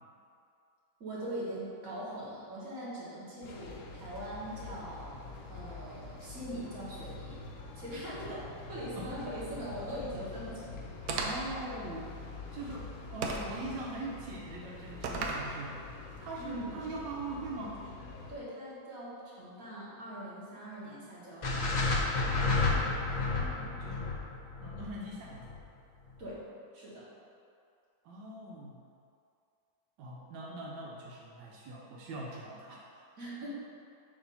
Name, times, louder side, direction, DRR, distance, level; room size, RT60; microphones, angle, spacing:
voice 1, 1.0-5.1 5.5-7.4 7.8-10.9 16.4-16.7 18.3-21.8 26.2-26.4 26.7-27.1 33.2-33.5, equal, 50° right, -9 dB, 2.0 m, -41 dB
sound 1, 3.4-18.4, left 3 dB, 60° left, 0.9 m, -46 dB
sound 2, 11.1-11.6 13.2-13.6 15.0-15.5, right 4 dB, 70° right, 1.0 m, -34 dB
voice 2, 11.2-12.1 12.5-15.8 16.2-17.8 22.7-24.1 24.6-25.6 28.0-28.8 30.0-32.8, right 2 dB, 85° right, -4 dB, 1.4 m, -42 dB
sound 3, 21.4-25.6, left 3 dB, 85° left, 0.4 m, -30 dB
6.9 x 2.7 x 5.5 m, 2.4 s
omnidirectional pair, 1.9 m